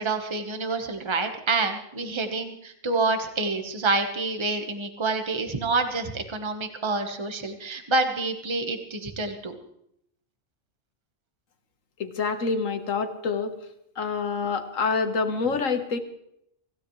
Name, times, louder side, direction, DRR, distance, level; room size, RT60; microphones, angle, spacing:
voice 1, 0.0-9.5, right 3 dB, 25° right, 6 dB, 1.3 m, -27 dB
voice 2, 12.0-13.5 14.0-16.0, left 4 dB, 90° left, 7 dB, 1.8 m, -27 dB
25.5 x 15.5 x 3.2 m, 0.75 s
omnidirectional pair, 1.3 m